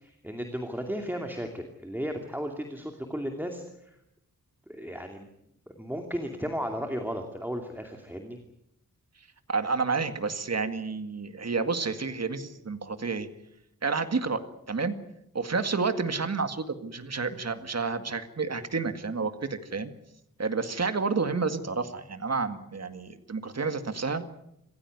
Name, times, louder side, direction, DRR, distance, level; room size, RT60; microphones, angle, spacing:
voice 1, 0.0-4.0 4.7-5.3 5.7-8.4, equal, 5° right, 4 dB, 2.6 m, -35 dB
voice 2, 9.5-13.3 13.8-14.4 14.7-14.9 15.3-19.9 20.4-24.2, right 4 dB, 50° right, 9 dB, 1.9 m, -30 dB
26.5 x 15.5 x 9.5 m, 0.81 s
wide cardioid pair, 95°, 34 cm